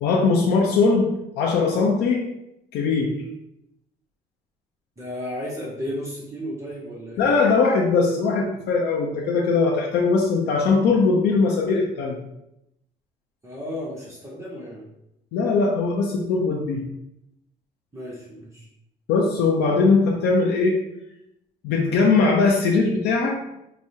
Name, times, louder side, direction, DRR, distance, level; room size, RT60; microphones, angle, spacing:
voice 1, 0.0-1.1 1.4-2.2 2.7-3.1 7.2-12.2 15.3-16.8 19.1-20.8 21.6-23.5, left 4 dB, 80° left, -1 dB, 0.6 m, -20 dB
voice 2, 5.0-7.3 13.4-14.9 17.9-18.7, left 1 dB, 15° right, -4 dB, 0.7 m, -33 dB
4.7 x 2.0 x 2.7 m, 0.83 s
cardioid pair, 110°, 17 cm